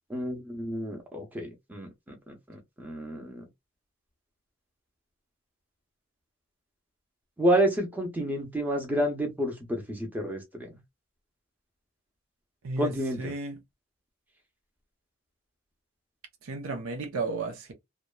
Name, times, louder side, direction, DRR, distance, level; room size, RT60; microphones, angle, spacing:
voice 1, 0.1-1.9 2.3-3.4 7.4-10.8 12.8-13.3, right 1 dB, 10° right, 0.7 m, -29 dB
voice 2, 12.6-13.6 16.4-17.7, right 3 dB, 85° right, 0.7 m, -34 dB
2.8 x 2.1 x 2.2 m
head